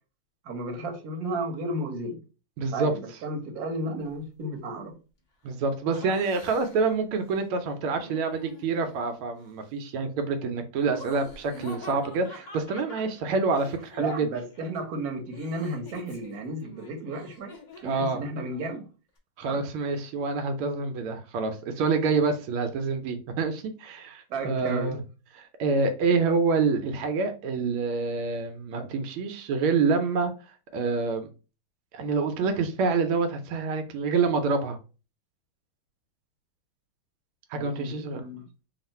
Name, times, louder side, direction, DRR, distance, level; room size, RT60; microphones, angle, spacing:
voice 1, 0.4-2.2 2.7-4.9 14.0-17.5 17.8-18.9 19.5-19.6 24.3-25.0 37.5-38.4, right 1 dB, 55° right, 1.2 m, -33 dB
voice 2, 2.6-2.9 5.4-14.3 17.8-18.2 19.4-25.0 25.3-30.3 30.7-31.3 31.9-34.8 37.5-38.2, right 4 dB, 85° right, 1.5 m, -27 dB
Laughter, 5.9-6.9 8.0-9.0 10.8-14.7 15.0-18.1, left 3 dB, 40° left, 0.7 m, -46 dB
3.6 x 2.4 x 4.1 m
omnidirectional pair, 2.3 m